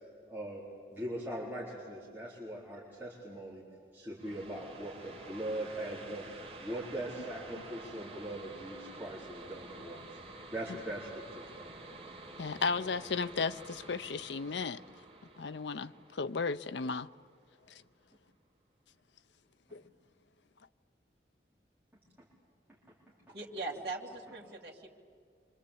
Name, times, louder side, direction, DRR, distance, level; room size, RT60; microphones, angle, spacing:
voice 1, 0.3-0.6 0.9-3.6 3.9-6.3 6.6-10.2 10.5-12.1, right 1 dB, 10° right, 4.3 m, -41 dB
sound 1, 4.2-17.5, right 2 dB, 35° right, 2.5 m, -50 dB
voice 2, 12.4-14.8 15.4-17.1 17.7-17.8 19.7-19.8, left 4 dB, 80° left, 0.6 m, -35 dB
voice 3, 23.3-24.9, right 3 dB, 65° right, 2.8 m, -40 dB
27.5 x 25.5 x 8.6 m
head